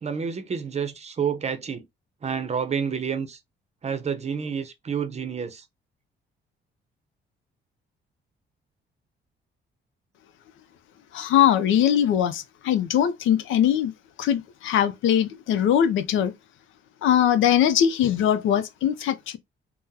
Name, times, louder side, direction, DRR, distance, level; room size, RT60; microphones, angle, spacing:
voice 1, 0.0-1.9 2.2-3.4 3.8-5.6, right 6 dB, 35° right, 0.6 m, -29 dB
voice 2, 11.1-13.9 14.2-16.3 17.0-19.4, left 10 dB, 80° left, 0.5 m, -21 dB
3.6 x 2.1 x 2.7 m
cardioid pair, 90°, 20 cm